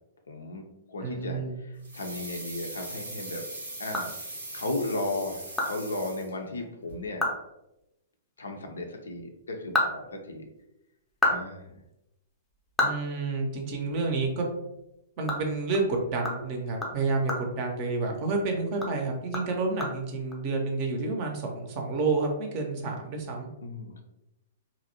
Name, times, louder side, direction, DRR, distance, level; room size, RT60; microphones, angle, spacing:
voice 1, 0.3-3.4 3.8-7.2 8.4-10.4 11.3-11.8 23.6-24.0, left 2 dB, 70° left, 4 dB, 0.4 m, -35 dB
voice 2, 1.0-1.6 12.8-14.5 15.2-23.5, right 3 dB, 35° right, 2 dB, 0.6 m, -29 dB
sound 1, 1.8-6.6 6.9-7.0, right 2 dB, 75° right, 0.7 m, -40 dB
sound 2, 3.5-4.7 5.1-5.2 5.6-5.7 6.0-6.1 6.6-6.7 7.1-7.5 7.7-7.8 9.3-10.6 11.0-13.9 14.2-14.4 14.8-18.3 18.7-20.3, left 1 dB, 10° left, 0.5 m, -32 dB
2.6 x 2.0 x 2.7 m, 0.89 s
figure-of-eight pair, 110°, 0 cm